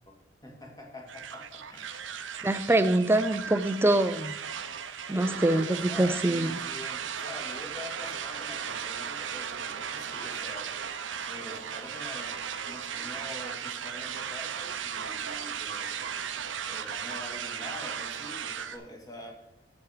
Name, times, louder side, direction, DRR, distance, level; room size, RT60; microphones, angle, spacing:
voice 1, 0.4-2.0 2.7-2.9 5.1-10.8 11.2-16.1 16.6-19.5, left 1 dB, 20° left, 1 dB, 2.0 m, -45 dB
sound 1, 1.1-18.8, right 7 dB, 75° right, 0.7 m, -36 dB
voice 2, 2.4-4.3 5.1-6.5, right 1 dB, 15° right, 12 dB, 0.5 m, -24 dB
8.2 x 7.3 x 4.9 m, 0.87 s
head